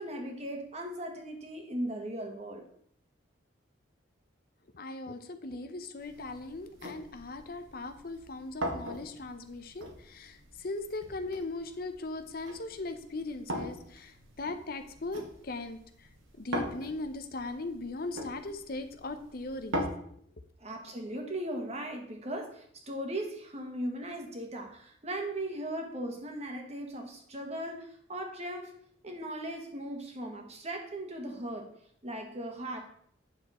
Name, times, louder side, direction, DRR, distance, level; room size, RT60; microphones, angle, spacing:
voice 1, 0.0-2.7 20.6-28.7 29.0-31.7 32.0-32.8, right 1 dB, 35° right, 3 dB, 1.6 m, -38 dB
voice 2, 4.7-16.1 16.4-19.8, left 2 dB, 50° left, 9 dB, 0.7 m, -39 dB
sound 1, 6.0-19.9, equal, 90° right, 1.9 m, -41 dB
9.6 x 6.8 x 4.2 m, 0.65 s
head